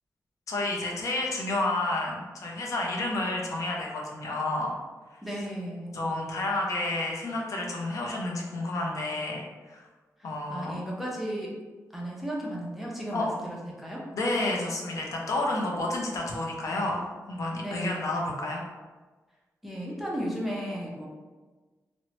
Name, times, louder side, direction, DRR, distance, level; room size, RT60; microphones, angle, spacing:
voice 1, 0.5-4.7 5.1-5.2 5.9-9.9 10.2-10.8 13.1-13.3 14.1-18.7, left 2 dB, 65° left, -1 dB, 0.5 m, -30 dB
voice 2, 5.2-6.0 10.5-11.5 11.9-14.0 17.6-18.1 19.6-21.1, equal, ahead, -4 dB, 0.5 m, -34 dB
2.9 x 2.0 x 2.8 m, 1.3 s
wide cardioid pair, 140°, 6 cm